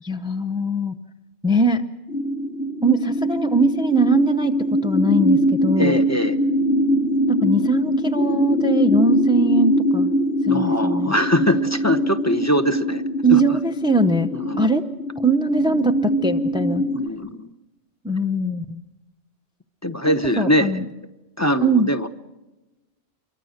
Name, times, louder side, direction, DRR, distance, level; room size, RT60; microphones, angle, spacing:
voice 1, 0.0-0.9 1.4-1.8 2.8-4.6 4.8-6.0 7.3-10.1 10.4-11.1 13.2-14.3 14.6-14.8 15.2-16.8 18.0-18.8 20.1-20.9 21.6-21.9, right 2 dB, 5° right, 7 dB, 0.4 m, -21 dB
sound 1, 2.1-17.1, equal, 55° left, 1.3 m, -22 dB
voice 2, 5.8-6.4 10.5-13.0 13.3-13.4 14.3-14.7 16.9-17.5 19.8-20.7 21.4-22.1, equal, 15° left, 7 dB, 0.9 m, -22 dB
27.0 x 23.5 x 6.5 m, 1.1 s
omnidirectional pair, 1.4 m